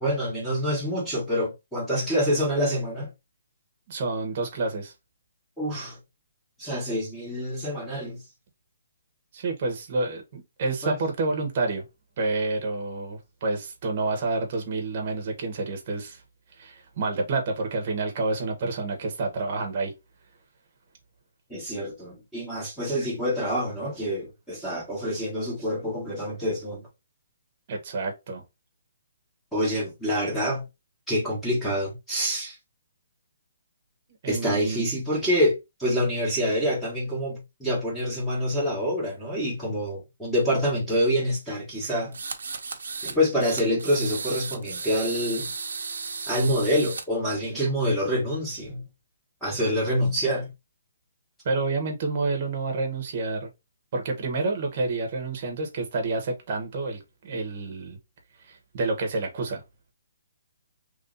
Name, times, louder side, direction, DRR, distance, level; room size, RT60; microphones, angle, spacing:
voice 1, 0.0-3.1 5.6-6.0 6.6-8.2 10.8-11.0 21.5-26.8 29.5-30.6 31.1-32.5 34.3-42.1 43.0-45.5 46.3-48.8 49.4-50.5, equal, 5° left, 1.2 m, -26 dB
voice 2, 3.9-4.9 9.3-11.8 12.2-16.2 16.6-19.9 27.7-28.4 34.2-34.9 51.4-53.5 53.9-58.0 58.4-59.6, right 3 dB, 35° right, 1.0 m, -29 dB
sound 1, 42.1-43.2 43.4-47.0, right 4 dB, 75° right, 0.7 m, -34 dB
3.1 x 2.7 x 3.9 m
hypercardioid pair, 170°, 0 cm